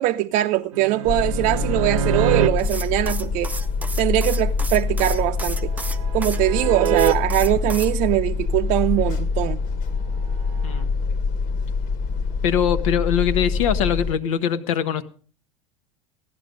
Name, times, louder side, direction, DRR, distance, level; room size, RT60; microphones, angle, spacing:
voice 1, 0.0-3.5 4.0-5.7 6.1-9.6, right 15 dB, 50° right, 0.6 m, -22 dB
sound 1, 0.7-2.5 5.2-7.1 10.6-10.8, right 10 dB, 75° right, 0.9 m, -25 dB
sound 2, 1.0-14.1, left 4 dB, 50° left, 1.5 m, -25 dB
sound 3, 2.6-6.4 6.9-7.9, right 2 dB, 10° right, 0.7 m, -34 dB
voice 2, 12.4-15.0, left 8 dB, 70° left, 1.2 m, -22 dB
15.5 x 11.0 x 5.2 m
hypercardioid pair, 80°, 17 cm